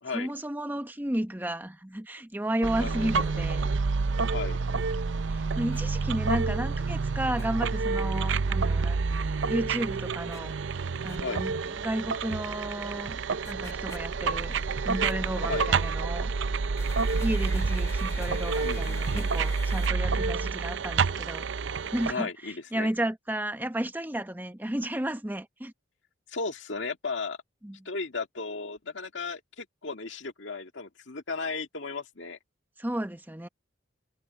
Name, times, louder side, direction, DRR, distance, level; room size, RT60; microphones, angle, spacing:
voice 1, 0.1-3.7 5.3-9.0 9.5-10.5 11.0-11.6 11.8-13.2 13.5-16.3 17.2-21.5 21.9-25.7 27.6-27.8 32.8-33.5, right 1 dB, 10° right, 0.9 m, -33 dB
sound 1, 2.6-22.1, right 4 dB, 70° right, 0.6 m, -28 dB
voice 2, 2.8-3.5 4.3-4.6 11.2-11.4 15.5-15.7 18.6-19.3 22.1-22.9 26.3-27.4 27.9-32.4, left 4 dB, 70° left, 2.0 m, -35 dB
Bagpipes in Pitlochery, 5.7-5.8 7.4-7.5 10.3-10.4 11.1-11.2 13.5-14.0 15.0-15.1 16.8-19.9, left 3 dB, 15° left, 2.2 m, -45 dB
head